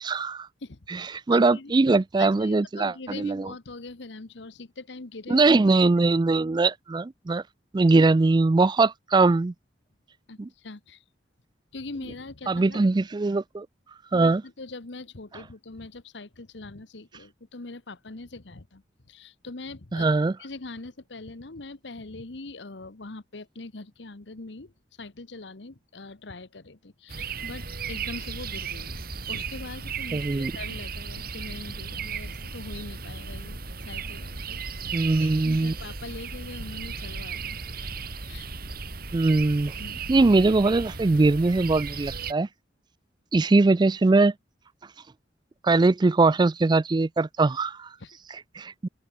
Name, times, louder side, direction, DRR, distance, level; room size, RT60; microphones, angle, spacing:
voice 1, 0.0-0.5 0.9-3.5 5.3-7.4 7.7-9.5 10.4-10.5 12.5-13.7 14.1-14.4 19.9-20.3 30.1-30.5 34.9-35.7 39.1-39.7 40.1-42.5 43.3-44.3 45.6-48.0 48.3-48.9, right 3 dB, 25° right, 0.4 m, -21 dB
voice 2, 0.6-1.8 2.2-5.4 8.0-8.1 10.3-11.0 11.7-12.9 14.1-20.1 20.4-24.7 25.0-29.0 29.3-38.5 39.8-40.1 48.0-48.1, left 3 dB, 70° left, 1.2 m, -42 dB
sound 1, 27.1-42.3, right 5 dB, 55° right, 2.8 m, -35 dB
open air
head